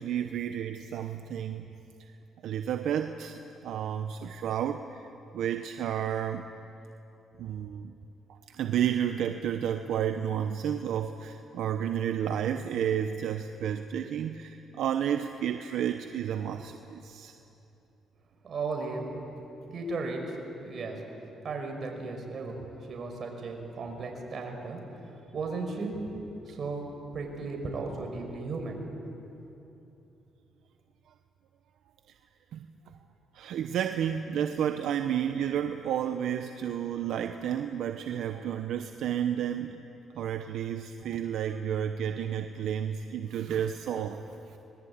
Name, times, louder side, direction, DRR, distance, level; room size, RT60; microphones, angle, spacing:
voice 1, 0.0-1.6 2.0-2.1 2.4-5.0 5.3-6.4 7.4-7.9 8.3-17.3 32.5-32.6 33.3-39.8 40.1-44.6, right 9 dB, 80° right, 7 dB, 0.9 m, -31 dB
voice 2, 18.4-19.1 19.7-20.4 20.6-21.0 21.4-26.9 27.1-28.8, right 3 dB, 50° right, 2 dB, 5.6 m, -35 dB
25.5 x 21.0 x 8.8 m, 3.0 s
cardioid pair, 90°, 0 cm